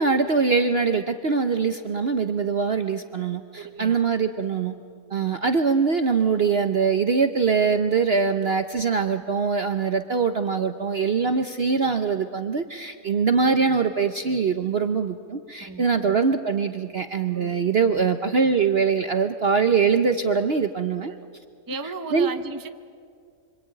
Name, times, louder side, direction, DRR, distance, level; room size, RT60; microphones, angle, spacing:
voice 1, 0.0-4.7 5.1-21.1 22.1-22.3, right 5 dB, 45° right, 7 dB, 0.9 m, -23 dB
voice 2, 3.5-4.0 5.1-5.4 15.6-16.2 17.3-18.1 21.1-21.3 21.7-22.7, right 4 dB, 15° right, 7 dB, 0.8 m, -37 dB
26.5 x 25.0 x 8.9 m, 2.2 s
omnidirectional pair, 1.7 m